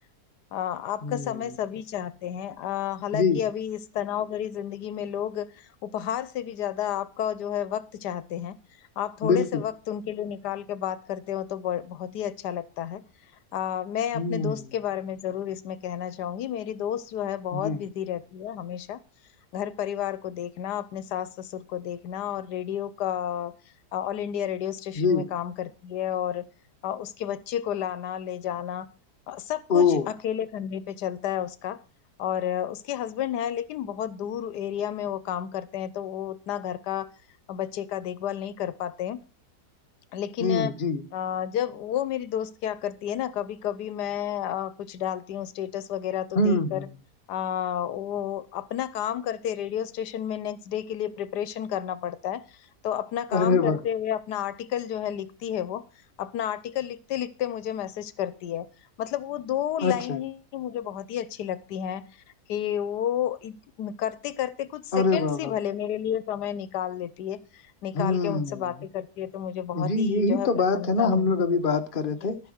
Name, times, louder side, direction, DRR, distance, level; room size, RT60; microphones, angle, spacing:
voice 1, 0.5-8.6 9.0-13.0 13.5-19.0 19.5-23.5 23.9-26.5 26.8-28.9 29.3-31.8 32.2-37.1 37.5-39.2 40.1-40.7 41.1-46.9 47.3-55.8 56.2-58.7 59.0-62.1 62.5-71.6, left 10 dB, 85° left, 1.3 m, -31 dB
voice 2, 1.0-1.4 3.1-3.4 9.2-9.6 14.1-14.6 17.5-17.8 25.0-25.3 29.7-30.1 40.4-41.0 46.3-46.9 53.3-53.8 59.8-60.2 64.9-65.6 67.9-68.7 69.7-72.4, left 4 dB, 35° left, 1.1 m, -24 dB
13.5 x 5.9 x 6.3 m
omnidirectional pair, 1.7 m